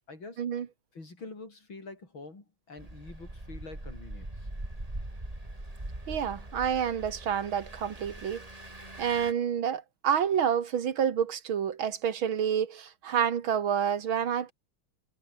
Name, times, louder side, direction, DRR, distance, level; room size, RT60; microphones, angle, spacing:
voice 1, 0.1-0.4 0.9-4.5, left 3 dB, 70° left, 6.4 m, -46 dB
Engine, 2.8-9.3, right 1 dB, 15° right, 4.2 m, -42 dB
voice 2, 6.1-8.5 9.0-14.5, right 8 dB, 75° right, 2.4 m, -28 dB
omnidirectional pair, 2.3 m